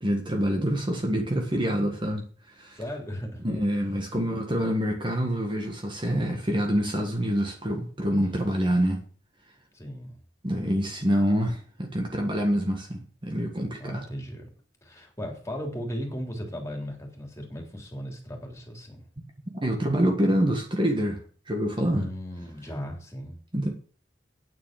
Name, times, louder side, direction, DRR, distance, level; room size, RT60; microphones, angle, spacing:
voice 1, 0.0-2.8 3.4-9.0 10.4-14.0 19.6-21.2 21.5-22.1 23.5-23.7, equal, 25° right, 1.7 m, -26 dB
voice 2, 2.7-3.4 3.8-4.0 8.2-8.8 9.7-10.2 13.8-14.5 14.8-19.0 21.9-23.4, equal, 15° left, 3.4 m, -37 dB
9.3 x 8.4 x 7.5 m
head